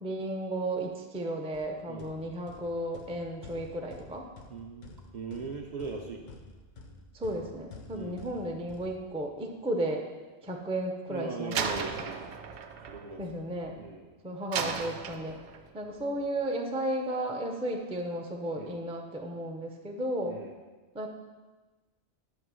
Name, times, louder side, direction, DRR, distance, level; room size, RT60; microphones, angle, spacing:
voice 1, 0.0-4.3 7.1-10.0 10.4-11.8 13.2-13.8 14.2-15.4 15.7-20.4 20.9-21.1, right 1 dB, 10° right, 1 dB, 0.4 m, -34 dB
sound 1, 1.5-9.5, left 3 dB, 50° left, 0.6 m, -51 dB
voice 2, 4.5-6.3 7.9-8.2 11.1-12.4 12.9-13.2 13.8-14.1 18.6-18.8 20.2-20.6, right 4 dB, 50° right, 0 dB, 0.6 m, -40 dB
Slam, 11.5-13.9 14.5-15.7, right 6 dB, 80° right, 0.9 m, -35 dB
8.2 x 2.9 x 6.2 m, 1.2 s
omnidirectional pair, 1.1 m